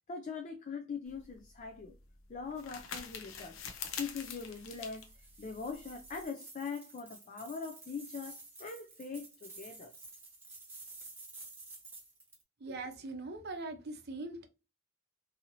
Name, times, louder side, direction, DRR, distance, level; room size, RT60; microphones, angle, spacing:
voice 1, 0.1-1.9 2.3-3.6 3.9-5.0 5.4-9.9, left 5 dB, 35° left, 0.4 m, -42 dB
sound 1, 1.1-6.3, left 6 dB, 85° left, 0.6 m, -46 dB
sound 2, 4.2-12.4, right 3 dB, 10° right, 0.9 m, -52 dB
voice 2, 12.6-14.5, right 2 dB, 55° right, 0.6 m, -41 dB
2.8 x 2.7 x 2.6 m
head